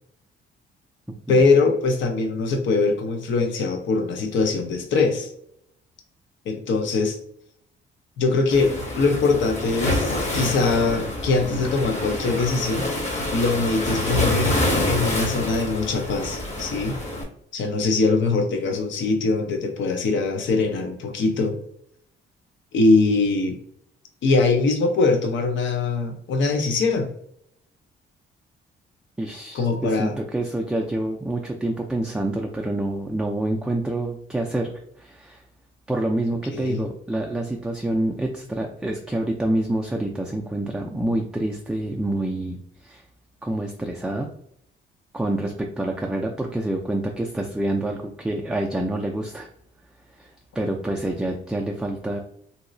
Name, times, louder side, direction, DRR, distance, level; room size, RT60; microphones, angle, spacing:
voice 1, 1.3-5.3 6.4-7.2 8.2-12.9 13.3-17.0 17.5-21.6 22.7-23.6 24.2-27.1 29.5-30.2 36.5-36.8, left 3 dB, 70° left, 5 dB, 0.7 m, -22 dB
Waves surf, 8.5-17.2, left 1 dB, 35° left, 0.9 m, -26 dB
voice 2, 29.2-34.7 35.0-35.4 35.9-43.0 43.4-44.3 45.1-49.5 50.2-52.2, right 1 dB, 5° right, 1 dB, 0.3 m, -27 dB
3.0 x 2.8 x 2.6 m, 0.70 s
cardioid pair, 90°, 20 cm